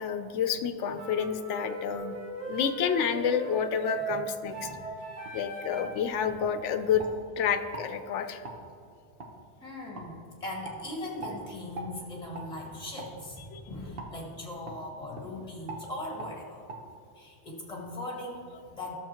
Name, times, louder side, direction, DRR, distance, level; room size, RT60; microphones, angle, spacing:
voice 1, 0.0-2.2 2.5-4.7 5.3-7.0 7.4-8.4 13.5-13.7, left 7 dB, 80° left, 9 dB, 0.9 m, -29 dB
sound 1, 0.9-6.1, right 3 dB, 80° right, 1.7 m, -38 dB
voice 2, 4.6-4.9 9.6-16.6 17.2-18.9, left 1 dB, 30° left, -3 dB, 1.9 m, -40 dB
sound 2, 5.2-5.4 5.8-6.0 6.4-7.1 7.7-7.9 8.4-8.6 9.2-9.3 9.9-10.1 10.6-10.8 11.2-11.4 11.7-11.9 12.3-12.5 13.0-13.1 14.0-14.1 14.7-14.8 15.1-15.3 15.7-15.8 16.2-16.3 16.7-16.8, right 2 dB, 55° right, 1.2 m, -41 dB
13.5 x 7.0 x 2.9 m, 2.4 s
omnidirectional pair, 1.2 m